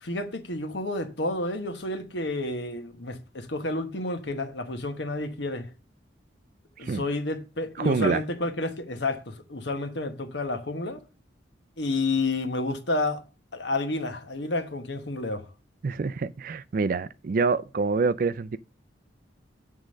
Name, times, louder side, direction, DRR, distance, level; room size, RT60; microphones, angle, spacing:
voice 1, 0.0-5.7 6.8-11.0 11.8-13.2 13.5-15.5, left 2 dB, 65° left, 1.2 m, -30 dB
voice 2, 7.8-8.2 15.8-18.6, right 4 dB, 45° right, 0.3 m, -26 dB
8.2 x 3.8 x 6.2 m
head